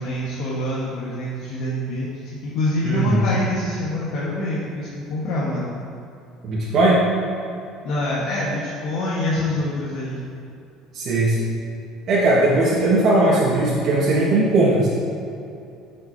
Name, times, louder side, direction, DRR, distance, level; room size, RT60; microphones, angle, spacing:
voice 1, 0.0-5.7 7.8-10.2, left 1 dB, 65° left, -7 dB, 1.3 m, -25 dB
voice 2, 2.8-3.2 6.4-7.0 10.9-11.5 12.1-14.9, right 2 dB, 50° right, -8 dB, 1.5 m, -18 dB
9.4 x 5.5 x 2.7 m, 2.6 s
cardioid pair, 120°, 0 cm